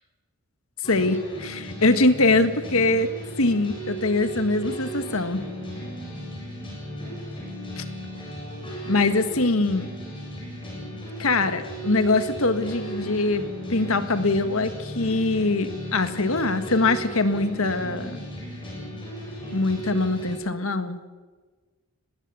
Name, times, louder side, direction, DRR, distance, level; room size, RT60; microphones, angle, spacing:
sound 1, 0.8-20.3, right 1 dB, 25° left, 7.6 m, -36 dB
voice 1, 0.9-3.1 3.4-5.5 7.8-7.9 8.8-9.9 11.2-18.2 19.5-21.0, left 2 dB, 80° left, 9 dB, 1.6 m, -23 dB
20.5 x 17.0 x 8.3 m, 1.4 s
head